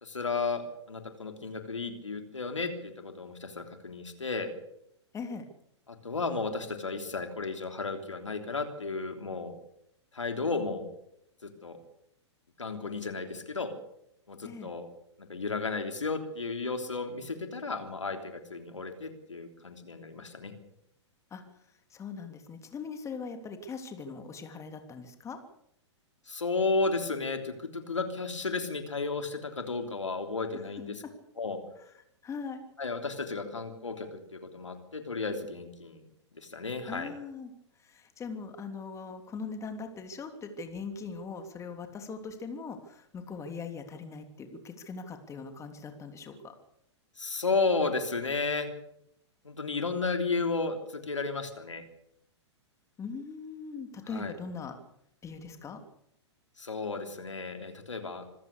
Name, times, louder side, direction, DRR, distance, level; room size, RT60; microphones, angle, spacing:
voice 1, 0.0-0.6 0.9-4.5 5.9-9.5 10.1-10.9 11.4-11.8 12.6-13.7 14.3-14.9 15.2-20.5 26.3-31.0 31.4-31.6 32.8-36.0 36.3-37.1 47.2-48.7 49.4-51.8 54.1-54.3 56.6-58.2, left 3 dB, 90° left, 6 dB, 3.3 m, -33 dB
voice 2, 5.1-5.4 14.4-14.7 21.3-21.4 21.9-25.4 32.2-32.6 36.9-37.5 37.8-46.5 53.0-54.7 55.2-55.8, left 5 dB, 20° left, 7 dB, 3.1 m, -40 dB
26.0 x 15.5 x 6.9 m, 0.77 s
hypercardioid pair, 115°, 15 cm